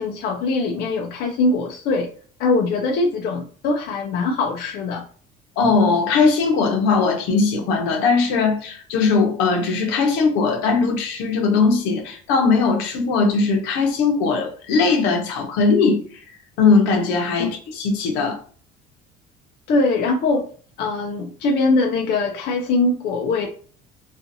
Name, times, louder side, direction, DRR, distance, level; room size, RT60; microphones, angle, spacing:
voice 1, 0.0-2.1 2.4-5.0 17.4-17.5 19.7-20.5 20.8-23.5, left 3 dB, 65° left, 0.5 m, -22 dB
voice 2, 5.6-16.0 16.6-18.4, left 4 dB, 85° left, 0.8 m, -19 dB
2.6 x 2.5 x 2.6 m
cardioid pair, 110°, 17 cm